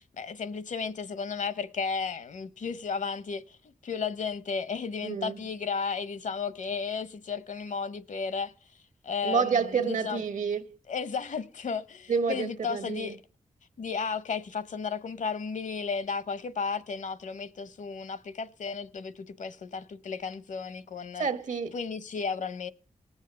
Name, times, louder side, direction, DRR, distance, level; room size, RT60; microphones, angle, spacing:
voice 1, 0.0-8.5 9.0-10.2 10.9-13.2 13.8-21.3 21.7-22.7, left 5 dB, 70° left, 0.8 m, -34 dB
voice 2, 5.0-5.4 9.2-10.8 12.1-13.2 21.2-21.7, right 6 dB, 70° right, 1.1 m, -29 dB
18.5 x 7.3 x 6.6 m
wide cardioid pair, 105°, 13 cm